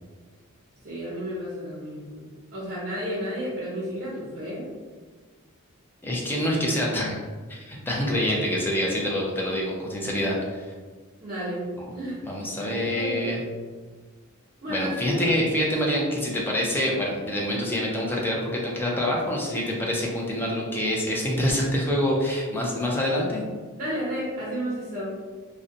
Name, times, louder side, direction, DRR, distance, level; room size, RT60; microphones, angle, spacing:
voice 1, 0.8-4.7 11.2-12.2 12.6-13.4 14.6-15.4 23.8-25.1, equal, 40° right, -7 dB, 0.7 m, -32 dB
voice 2, 6.0-7.2 7.5-10.7 11.8-11.9 12.3-13.4 14.7-23.4, left 1 dB, 10° left, -3 dB, 0.4 m, -26 dB
2.5 x 2.1 x 2.6 m, 1.5 s
head